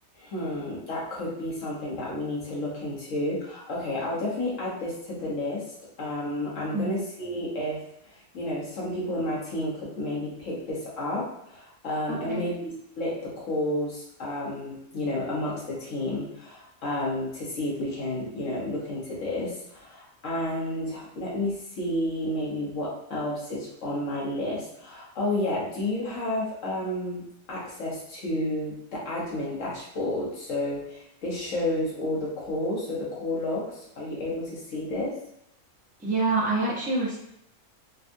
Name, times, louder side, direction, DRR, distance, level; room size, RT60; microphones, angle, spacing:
voice 1, 0.2-5.6 6.0-7.8 8.3-35.1, left 1 dB, 60° left, -5 dB, 1.4 m, -31 dB
voice 2, 12.1-12.5 36.0-37.2, right 2 dB, 10° right, -4 dB, 0.4 m, -26 dB
3.5 x 2.3 x 2.6 m, 0.78 s
omnidirectional pair, 1.5 m